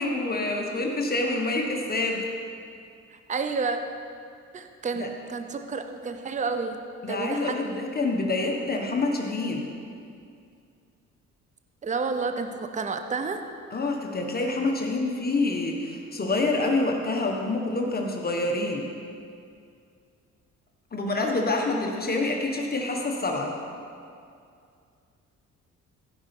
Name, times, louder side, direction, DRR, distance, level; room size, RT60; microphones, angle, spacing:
voice 1, 0.0-2.2 4.9-5.1 7.0-9.7 13.7-18.9 20.9-23.5, left 2 dB, 30° left, 1 dB, 1.4 m, -27 dB
voice 2, 3.3-3.9 4.5-6.8 7.1-7.8 11.8-13.4, right 4 dB, 25° right, 7 dB, 0.7 m, -30 dB
15.5 x 5.5 x 5.3 m, 2.4 s
cardioid pair, 90°, 30 cm